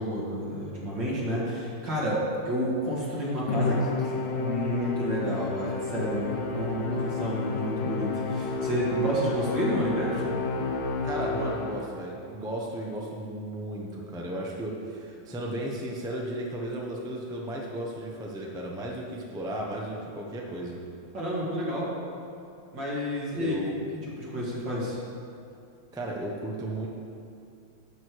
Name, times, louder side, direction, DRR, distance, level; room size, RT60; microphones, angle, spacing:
voice 1, 0.0-10.3 10.6-10.7 21.1-21.9 22.7-23.8 24.2-25.0, equal, 65° right, -6 dB, 2.9 m, -30 dB
Musical instrument, 3.5-12.0, left 3 dB, 70° left, 1.5 m, -30 dB
voice 2, 11.0-20.8 23.3-23.7 25.9-26.9, right 1 dB, 5° right, -2 dB, 0.5 m, -35 dB
12.0 x 6.6 x 4.7 m, 2.6 s
omnidirectional pair, 2.2 m